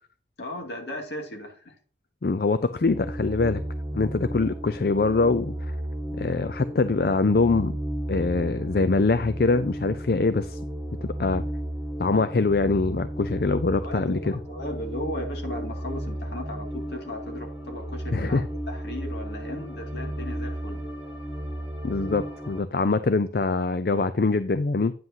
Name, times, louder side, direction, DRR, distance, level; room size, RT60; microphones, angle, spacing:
voice 1, 0.4-1.7 13.8-20.9, left 1 dB, 75° left, 2.4 m, -36 dB
voice 2, 2.2-3.6 3.9-5.5 6.2-7.7 8.1-10.6 11.2-11.4 12.0-14.2 18.1-18.4 21.8-24.9, left 3 dB, 55° left, 0.5 m, -23 dB
sound 1, 2.8-22.6, right 1 dB, 5° right, 1.9 m, -34 dB
9.5 x 7.7 x 2.8 m
head